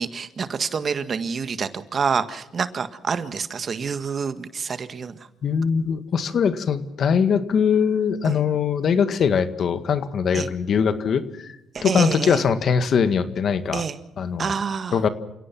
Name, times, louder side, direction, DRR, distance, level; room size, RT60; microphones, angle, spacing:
voice 1, 0.0-5.1 8.2-8.4 10.3-10.5 11.7-12.4 13.7-14.0 14.4-15.0, right 6 dB, 45° right, 10 dB, 1.7 m, -27 dB
voice 2, 5.4-11.6 11.8-13.8 14.2-14.5 14.9-15.1, left 6 dB, 60° left, 10 dB, 1.9 m, -21 dB
29.0 x 17.5 x 6.1 m, 0.89 s
cardioid pair, 90°, 0 cm